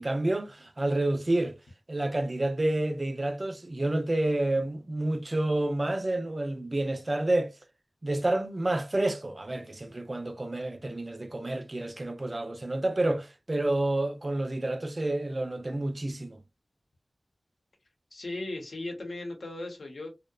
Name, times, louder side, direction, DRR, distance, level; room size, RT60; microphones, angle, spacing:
voice 1, 0.0-1.6 1.9-7.5 8.0-16.4, right 2 dB, 40° right, 0.4 m, -29 dB
voice 2, 18.1-20.1, left 2 dB, 80° left, 0.8 m, -37 dB
2.7 x 2.1 x 2.2 m
wide cardioid pair, 80°, 0 cm